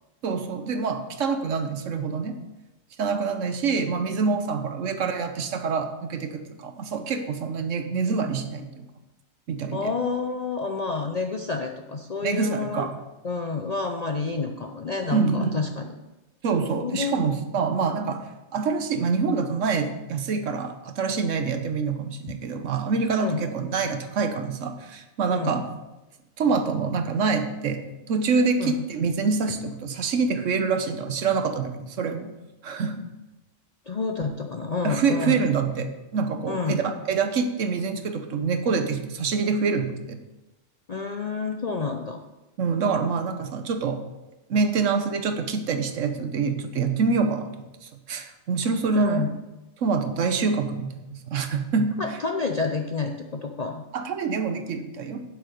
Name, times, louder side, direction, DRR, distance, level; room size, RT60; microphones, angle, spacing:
voice 1, 0.2-2.4 3.0-8.9 9.5-9.9 12.2-12.9 15.1-15.5 16.4-18.2 18.5-25.8 26.4-27.8 28.1-32.3 32.6-33.1 34.8-40.2 42.6-44.0 44.5-47.5 47.8-49.2 49.8-52.0 53.9-55.2, right 5 dB, 70° right, 7 dB, 1.2 m, -26 dB
voice 2, 9.7-12.9 13.2-15.9 16.9-17.1 23.2-23.4 25.3-25.6 28.6-28.8 33.9-35.4 36.5-36.8 40.9-42.2 48.9-49.4 52.0-53.8, left 4 dB, 45° left, 4 dB, 0.5 m, -29 dB
9.1 x 7.9 x 5.1 m, 1.0 s
omnidirectional pair, 1.3 m